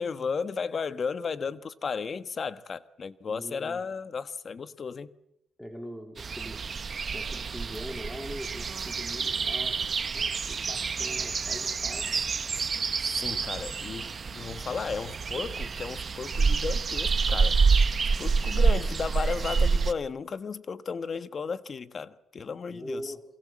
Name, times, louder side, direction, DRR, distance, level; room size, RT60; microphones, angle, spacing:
voice 1, 0.0-5.1 13.0-17.6 18.2-23.1, left 5 dB, 45° left, 1.2 m, -34 dB
voice 2, 3.3-3.8 5.6-9.8 10.1-12.2 22.7-23.2, equal, 5° left, 3.2 m, -42 dB
sound 1, 6.2-19.9, right 5 dB, 40° right, 1.1 m, -28 dB
28.5 x 23.5 x 7.4 m
cardioid pair, 90°, 0 cm